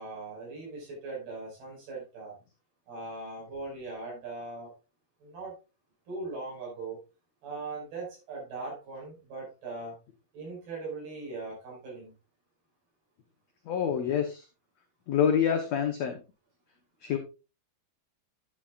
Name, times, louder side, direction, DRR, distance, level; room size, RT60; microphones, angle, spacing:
voice 1, 0.0-2.3 2.9-4.7 5.2-5.5 6.1-7.0 7.4-10.0 10.3-12.1, right 3 dB, 75° right, -2 dB, 7.3 m, -40 dB
voice 2, 13.7-14.4 15.1-16.2 17.0-17.2, left 8 dB, 80° left, 5 dB, 1.5 m, -27 dB
9.9 x 9.4 x 2.4 m, 0.30 s
omnidirectional pair, 4.5 m